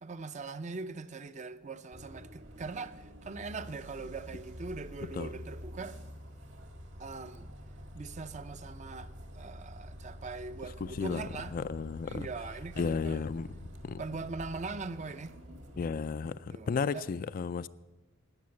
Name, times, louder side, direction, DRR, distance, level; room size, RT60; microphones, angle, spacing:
voice 1, 0.0-6.0 7.0-7.5 7.9-11.5 12.0-13.2 14.0-15.4 16.2-17.0, right 3 dB, 35° right, 0.5 m, -41 dB
Bus, 1.9-16.0, equal, 65° right, 1.8 m, -48 dB
voice 2, 10.8-11.3 11.5-12.3 12.8-14.0 15.8-17.7, left 5 dB, 45° left, 0.3 m, -34 dB
14.0 x 9.6 x 7.1 m
head